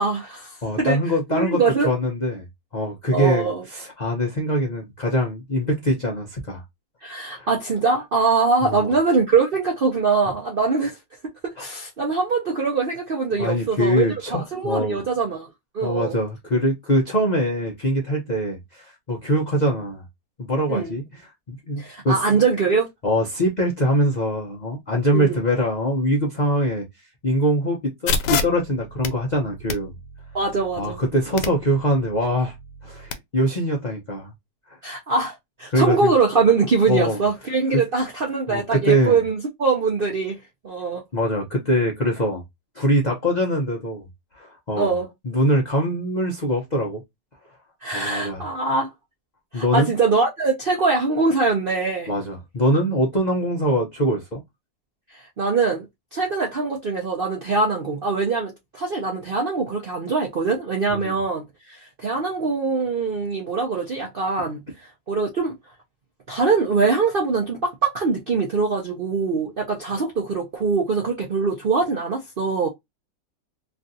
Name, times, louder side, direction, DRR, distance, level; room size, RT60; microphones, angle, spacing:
voice 1, 0.0-1.0 1.3-1.9 3.1-3.6 7.0-11.0 11.2-15.5 15.7-16.1 20.7-20.9 21.8-22.9 25.1-25.4 30.3-31.0 34.8-40.4 40.6-41.0 44.8-45.1 47.8-48.9 49.5-52.1 55.1-55.9 56.1-65.5 66.3-72.7, right 4 dB, 60° right, 0.5 m, -23 dB
voice 2, 0.6-2.4 2.7-3.5 3.7-6.6 7.2-7.5 8.6-8.9 13.4-15.0 15.8-20.0 20.4-21.0 21.5-22.2 23.0-26.8 27.2-30.0 30.8-32.5 32.8-34.3 34.7-34.8 35.7-36.1 36.9-37.2 38.5-39.2 41.1-42.4 42.7-44.0 44.3-44.9 45.2-47.0 47.9-48.4 49.5-49.9 52.1-54.4 60.9-61.1, equal, 55° left, 0.4 m, -23 dB
sound 1, 28.1-33.1, left 5 dB, 80° left, 1.3 m, -30 dB
3.2 x 2.5 x 2.6 m
omnidirectional pair, 1.9 m